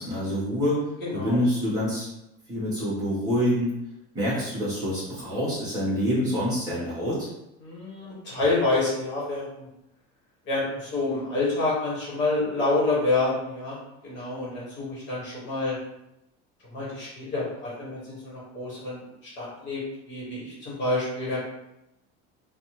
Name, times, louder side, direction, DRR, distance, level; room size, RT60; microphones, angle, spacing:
voice 1, 0.0-2.1 2.5-3.7 4.1-7.3, equal, 15° right, -10 dB, 1.1 m, -26 dB
voice 2, 1.0-1.4 7.6-9.7 10.4-13.8 14.0-15.8 16.7-21.5, left 2 dB, 40° left, -7 dB, 1.0 m, -28 dB
2.6 x 2.1 x 3.0 m, 0.87 s
cardioid pair, 180°, 30 cm